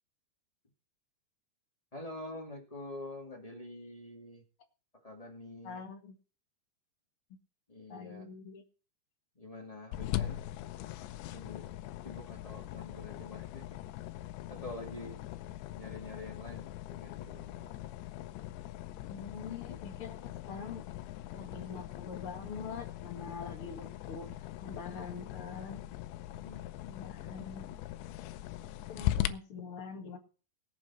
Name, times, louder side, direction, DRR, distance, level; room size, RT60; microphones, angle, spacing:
voice 1, 1.9-4.4 5.0-5.8 7.7-8.3 9.3-10.4 11.3-11.7 12.0-13.8 14.5-15.2 15.7-17.8 23.4-23.6 26.3-26.7, left 2 dB, 15° left, 1 dB, 1.2 m, -46 dB
voice 2, 5.6-6.1 7.9-8.6 19.0-20.9 21.3-25.8 26.9-27.8 28.9-30.2, left 5 dB, 45° left, 4 dB, 1.9 m, -44 dB
sound 1, 9.9-29.3, left 14 dB, 90° left, 2.9 m, -40 dB
21.5 x 7.5 x 4.3 m, 0.38 s
omnidirectional pair, 4.9 m